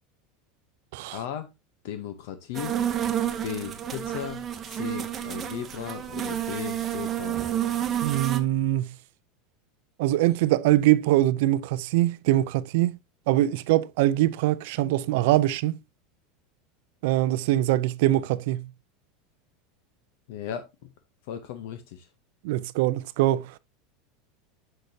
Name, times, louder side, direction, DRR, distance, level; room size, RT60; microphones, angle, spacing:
voice 1, 1.1-1.5 1.8-2.7 3.4-7.4 20.3-20.9 21.3-22.1, left 9 dB, 65° left, 0.7 m, -36 dB
sound 1, 2.5-8.4, right 10 dB, 20° right, 0.7 m, -30 dB
voice 2, 8.0-8.9 10.0-13.0 13.3-15.7 17.0-18.6 22.4-23.5, right 15 dB, 60° right, 0.5 m, -23 dB
6.6 x 6.4 x 2.7 m
supercardioid pair, 170°, 0 cm